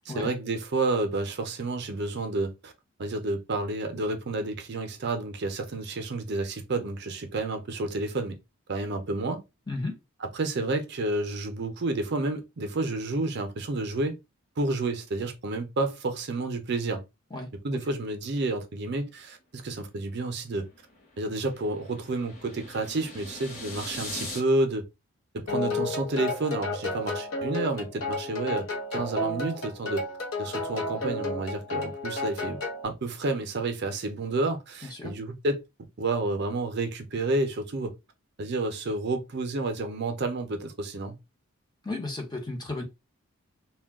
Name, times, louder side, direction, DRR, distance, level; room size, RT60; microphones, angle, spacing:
voice 1, 0.1-2.7 3.0-8.4 8.7-9.4 10.3-14.2 14.6-17.0 17.6-20.7 21.2-24.9 25.3-30.0 30.4-35.6 36.0-37.9 38.4-41.2, right 2 dB, 50° right, 0.5 m, -30 dB
sound 1, 20.1-24.4, left 2 dB, 35° left, 1.0 m, -41 dB
sound 2, 25.5-32.9, left 2 dB, 70° left, 0.8 m, -32 dB
voice 2, 41.8-42.8, left 2 dB, 20° left, 0.6 m, -33 dB
2.2 x 2.2 x 3.4 m
head